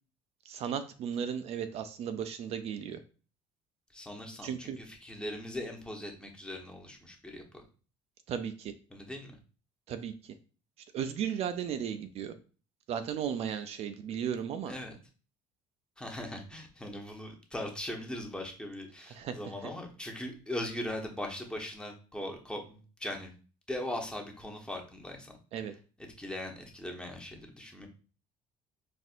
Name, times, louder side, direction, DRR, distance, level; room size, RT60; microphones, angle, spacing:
voice 1, 0.5-3.0 4.4-4.8 8.3-8.7 9.9-10.3 10.9-12.3 12.9-14.7 19.1-19.4 25.5-25.7, right 8 dB, 55° right, 10 dB, 0.4 m, -35 dB
voice 2, 3.9-7.6 8.9-9.4 14.7-15.0 16.0-23.3 23.7-25.3 26.2-27.9, left 1 dB, 5° left, 2 dB, 0.9 m, -40 dB
4.2 x 2.6 x 2.5 m, 0.37 s
supercardioid pair, 95°, 12 cm